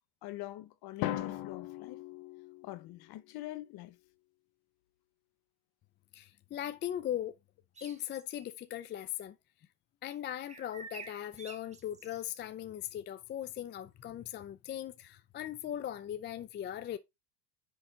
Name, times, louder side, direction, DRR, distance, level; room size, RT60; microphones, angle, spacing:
voice 1, 0.2-2.0 2.6-4.0, left 16 dB, 50° left, 0.9 m, -44 dB
Drum, 1.0-3.0, left 14 dB, 65° left, 1.3 m, -38 dB
voice 2, 6.1-7.4 7.8-9.4 10.0-17.0, left 11 dB, 25° left, 0.4 m, -39 dB
sound 1, 7.7-8.3 10.5-12.2, right 4 dB, 15° right, 1.4 m, -49 dB
10.0 x 3.6 x 4.1 m
supercardioid pair, 100°, 50 cm